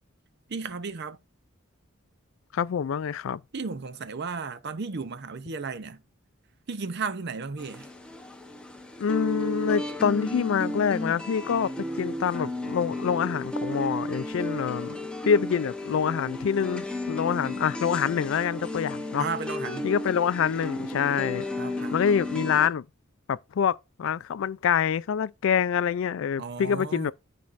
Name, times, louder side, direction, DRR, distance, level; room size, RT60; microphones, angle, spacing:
voice 1, 0.5-1.2 3.5-6.0 6.7-7.9 19.2-19.9 21.6-22.0 26.4-27.1, right 4 dB, 50° right, 0.6 m, -34 dB
voice 2, 2.5-3.4 9.0-11.7 12.0-15.0 15.3-19.3 19.8-21.5 21.9-22.8 23.3-27.1, left 7 dB, 65° left, 0.3 m, -26 dB
sound 1, 7.6-22.7, left 1 dB, 5° left, 0.8 m, -33 dB
12.5 x 4.3 x 2.5 m
head